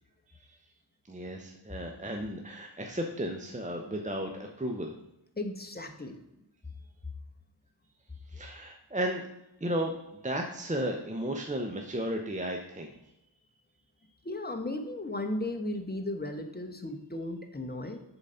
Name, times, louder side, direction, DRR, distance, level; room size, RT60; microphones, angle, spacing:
voice 1, 1.1-4.9 8.3-9.3 9.6-9.9 10.2-12.9, equal, 15° right, 2 dB, 0.7 m, -34 dB
voice 2, 5.4-6.2 14.2-18.0, left 1 dB, 20° left, 6 dB, 1.0 m, -35 dB
6.8 x 4.0 x 5.6 m, 0.87 s
wide cardioid pair, 45°, 45 cm